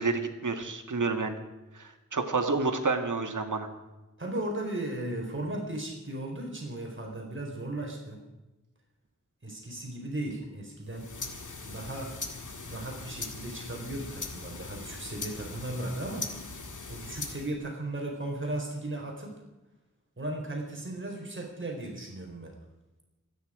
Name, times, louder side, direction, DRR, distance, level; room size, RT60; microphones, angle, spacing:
voice 1, 0.0-1.4 1.7-3.7, right 4 dB, 85° right, 6 dB, 2.0 m, -29 dB
voice 2, 4.2-8.2 9.4-11.1 11.6-12.1 12.6-16.3 16.9-19.4 20.2-22.5, right 1 dB, 40° right, 0 dB, 4.2 m, -36 dB
sound 1, 10.9-17.6, left 3 dB, 80° left, 2.0 m, -40 dB
27.0 x 10.0 x 5.0 m, 1.1 s
wide cardioid pair, 70°, 30 cm